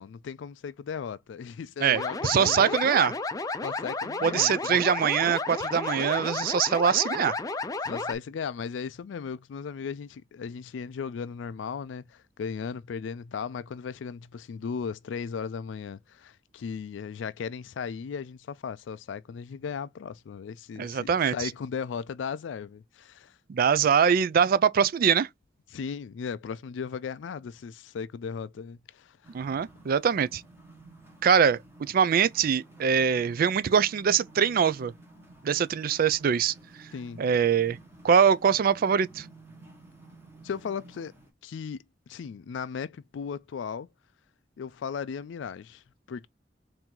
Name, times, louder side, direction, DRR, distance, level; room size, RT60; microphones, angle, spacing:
voice 1, 0.0-2.8 3.6-4.8 7.8-23.4 25.7-29.2 36.9-37.2 40.4-41.1 41.4-43.9 44.6-46.3, left 6 dB, 85° left, 0.4 m, -36 dB
voice 2, 1.8-3.1 4.2-7.4 20.8-21.5 23.5-25.3 29.3-30.4 31.2-34.9 35.4-36.5 37.2-37.8 38.0-39.3, right 7 dB, 50° right, 0.3 m, -23 dB
sound 1, 1.9-8.2, left 3 dB, 20° left, 0.4 m, -32 dB
sound 2, 29.2-41.3, right 2 dB, 15° right, 1.3 m, -52 dB
4.4 x 2.7 x 3.6 m
head